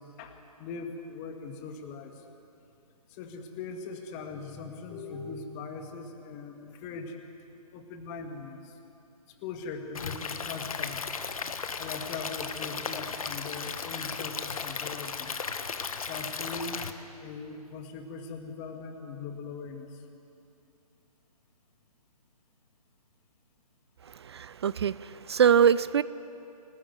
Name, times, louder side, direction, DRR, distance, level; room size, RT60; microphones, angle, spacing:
voice 1, 0.0-2.3 3.1-7.2 7.7-8.8 9.3-11.1 11.8-15.3 16.1-16.9 17.2-20.0, left 4 dB, 25° left, 5 dB, 2.0 m, -40 dB
Stream / Liquid, 9.9-16.9, left 5 dB, 60° left, 1.5 m, -35 dB
voice 2, 24.2-26.0, right 8 dB, 40° right, 18 dB, 0.4 m, -23 dB
23.5 x 19.5 x 8.1 m, 2.7 s
figure-of-eight pair, 140°, 20 cm